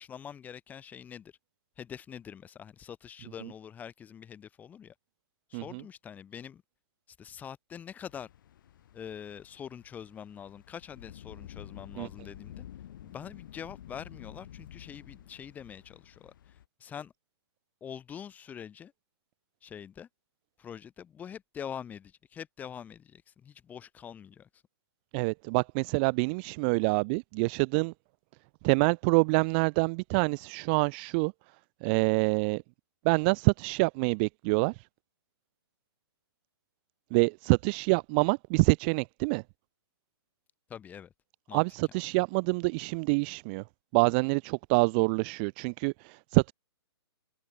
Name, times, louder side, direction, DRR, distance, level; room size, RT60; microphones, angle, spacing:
voice 1, 0.0-1.3 1.8-4.9 5.5-6.6 7.2-8.3 8.9-12.7 13.0-17.1 17.8-18.9 19.6-20.1 20.6-24.5 40.7-41.1 41.5-41.6, left 8 dB, 10° left, 2.0 m, -44 dB
voice 2, 5.5-5.9 12.0-12.1 25.1-27.9 28.6-31.3 31.8-32.6 33.0-34.9 37.1-39.4 41.5-43.6 43.9-46.5, right 32 dB, 25° right, 0.5 m, -26 dB
sound 1, 8.1-16.7, left 11 dB, 50° left, 2.4 m, -50 dB
hypercardioid pair, 155°, 14 cm